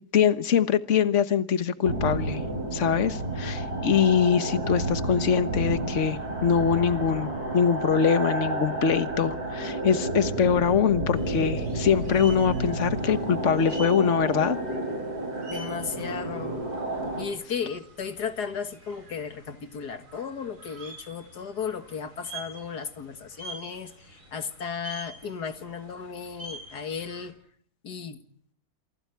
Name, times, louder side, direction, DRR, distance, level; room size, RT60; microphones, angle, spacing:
voice 1, 0.1-2.4 2.7-14.6, left 7 dB, 50° left, 1.6 m, -23 dB
sound 1, 1.8-17.3, right 2 dB, 75° right, 6.3 m, -31 dB
sound 2, 11.1-27.3, right 2 dB, 55° right, 6.9 m, -47 dB
voice 2, 15.5-16.6 17.2-27.4 27.8-28.2, left 6 dB, 90° left, 2.3 m, -35 dB
28.5 x 28.5 x 4.6 m
omnidirectional pair, 1.7 m